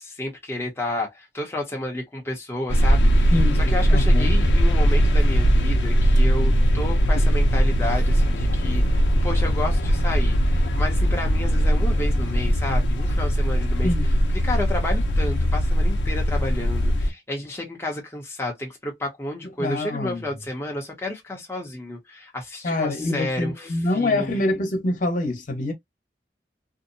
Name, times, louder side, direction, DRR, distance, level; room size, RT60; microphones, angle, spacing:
voice 1, 0.0-13.9 14.3-24.4, left 1 dB, 15° left, 0.7 m, -31 dB
sound 1, 2.7-17.1, equal, 90° left, 0.6 m, -20 dB
voice 2, 3.3-4.3 13.8-14.1 19.6-20.2 22.6-25.7, left 2 dB, 45° left, 1.0 m, -25 dB
2.6 x 2.1 x 2.6 m
head